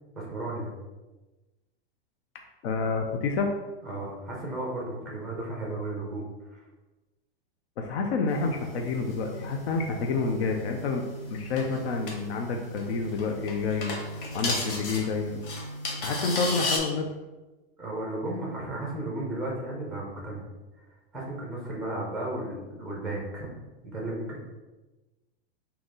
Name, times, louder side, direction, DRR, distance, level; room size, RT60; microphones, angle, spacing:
voice 1, 0.2-0.7 3.8-6.6 17.8-20.5 21.1-23.5 23.8-24.4, right 2 dB, ahead, -3 dB, 0.5 m, -34 dB
voice 2, 2.6-3.5 7.8-11.0 11.3-13.9 14.3-15.4 16.0-17.0, left 4 dB, 85° left, 2 dB, 0.6 m, -29 dB
sound 1, 8.3-16.8, left 1 dB, 55° left, 1.0 m, -35 dB
3.8 x 2.9 x 3.8 m, 1.2 s
supercardioid pair, 175°, 31 cm